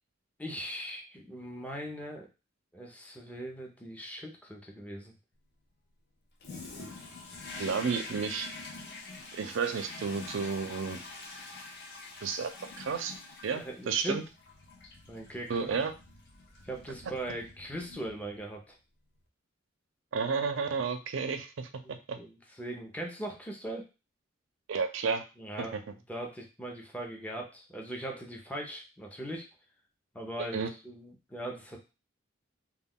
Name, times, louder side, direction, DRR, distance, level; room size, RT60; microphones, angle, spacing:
voice 1, 0.4-2.3 2.7-5.1 13.5-14.2 15.1-15.8 16.6-18.8 21.8-23.8 25.4-29.5 30.1-31.8, right 1 dB, 10° left, 1 dB, 0.5 m, -40 dB
Toilet flush, 6.4-18.7, left 3 dB, 60° left, 0.6 m, -46 dB
voice 2, 7.6-8.5 9.3-11.0 12.2-12.5 12.8-13.1 13.4-14.2 15.5-15.9 20.1-21.7 22.1-22.2 24.7-25.2 25.6-25.8 30.5-30.7, right 5 dB, 85° right, 7 dB, 0.4 m, -31 dB
2.2 x 2.2 x 3.5 m, 0.30 s
head